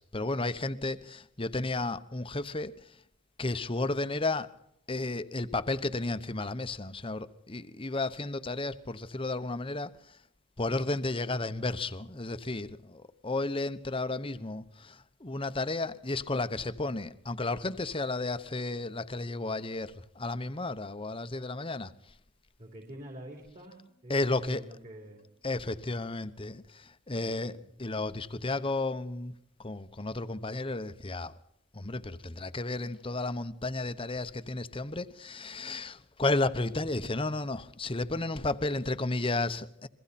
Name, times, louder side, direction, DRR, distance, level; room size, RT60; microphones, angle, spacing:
voice 1, 0.0-2.7 3.4-4.5 4.9-9.9 10.6-21.9 24.1-24.6 25.4-29.3 29.6-31.3 31.7-39.9, left 2 dB, 25° left, 1.0 m, -33 dB
voice 2, 22.6-25.3 27.5-27.8, right 1 dB, 35° right, 3.7 m, -47 dB
29.5 x 22.5 x 4.3 m
head